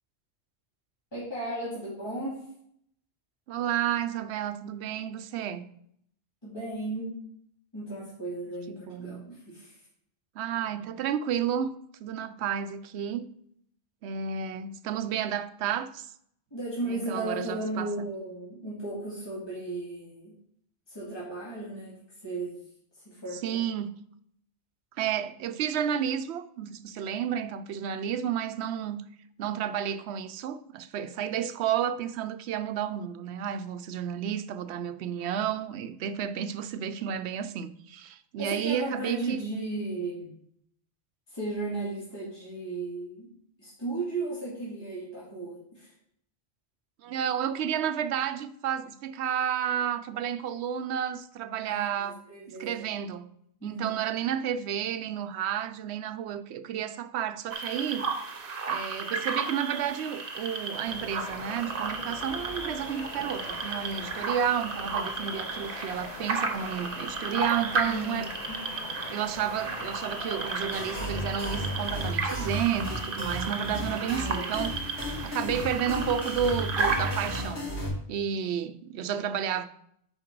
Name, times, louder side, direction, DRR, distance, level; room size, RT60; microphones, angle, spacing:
voice 1, 1.1-2.4 6.4-7.2 7.7-9.8 16.5-20.3 20.9-22.0 22.2-22.6 22.9-23.6 38.4-40.3 41.3-43.3 43.6-45.9 51.6-52.8 53.6-54.0 67.9-68.7 73.8-74.5, right 2 dB, 25° left, 2.3 m, -35 dB
voice 2, 3.5-5.6 8.7-9.3 10.4-11.7 12.0-13.3 14.0-16.1 16.9-17.9 23.3-24.0 25.0-29.0 29.4-39.4 47.0-52.2 52.6-53.3 53.6-58.1 58.7-68.3 69.1-77.7 78.1-79.6, right 9 dB, 85° right, 0.8 m, -31 dB
sound 1, 57.5-77.4, right 4 dB, 60° right, 1.1 m, -34 dB
sound 2, 60.9-72.1, left 7 dB, 55° left, 0.4 m, -43 dB
sound 3, 70.7-77.9, equal, 85° left, 2.2 m, -34 dB
8.6 x 4.7 x 4.6 m
omnidirectional pair, 1.1 m